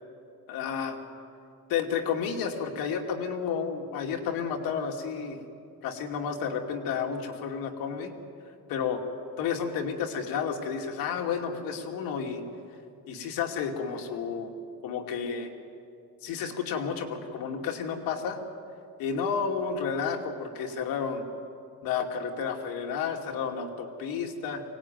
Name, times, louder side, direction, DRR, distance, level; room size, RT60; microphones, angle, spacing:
voice 1, 0.5-1.0 1.7-5.4 5.8-8.1 8.7-9.0 9.4-12.5 13.1-14.5 14.8-15.5 16.2-18.4 19.0-21.3 21.8-24.6, left 6 dB, 75° left, 3 dB, 2.7 m, -31 dB
24.0 x 18.5 x 9.3 m, 2.5 s
cardioid pair, 160°, 36 cm